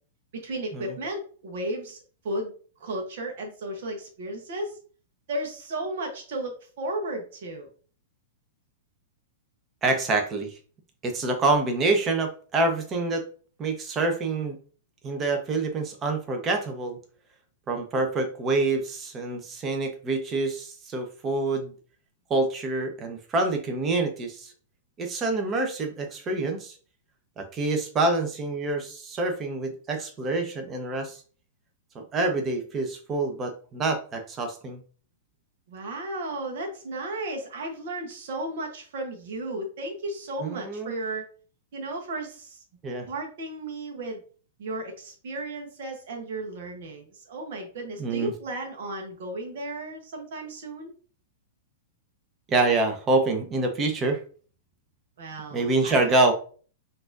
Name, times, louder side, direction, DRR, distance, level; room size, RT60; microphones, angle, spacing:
voice 1, 0.3-2.5 2.8-4.8 5.3-7.7 35.7-41.3 41.7-42.6 43.1-44.2 44.6-50.9 55.2-56.3, right 1 dB, 60° right, 2 dB, 1.1 m, -34 dB
voice 2, 9.8-10.6 11.0-13.2 13.6-14.6 15.0-17.0 17.7-21.7 22.3-24.5 25.0-26.8 27.4-31.2 31.9-34.8 40.4-40.9 42.8-43.1 48.0-48.3 52.5-54.2 55.5-56.3, right 2 dB, 25° right, 4 dB, 0.9 m, -26 dB
5.8 x 2.7 x 2.6 m, 0.41 s
hypercardioid pair, 105°, 0 cm